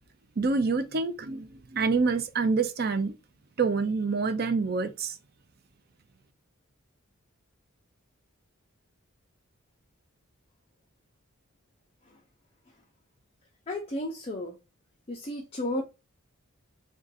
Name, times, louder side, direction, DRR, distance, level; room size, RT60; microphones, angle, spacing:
voice 1, 0.4-3.1 3.6-5.1, right 4 dB, 45° right, 0.5 m, -27 dB
voice 2, 13.7-14.6 15.1-15.8, left 1 dB, 25° left, 0.5 m, -33 dB
3.7 x 2.5 x 4.0 m
head